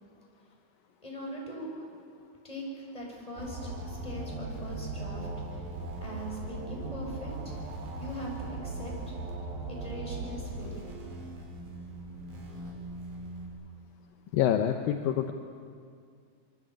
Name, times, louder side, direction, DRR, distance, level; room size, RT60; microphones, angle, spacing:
voice 1, 1.0-1.9 2.4-5.7 6.0-7.3 7.6-7.7 8.0-8.9 9.7-10.9, equal, 10° left, -2 dB, 6.7 m, -41 dB
sound 1, 3.4-13.5, right 2 dB, 70° right, 6.2 m, -39 dB
voice 2, 14.3-15.3, left 10 dB, 75° left, 6 dB, 2.5 m, -26 dB
26.5 x 23.5 x 9.0 m, 2.3 s
omnidirectional pair, 4.4 m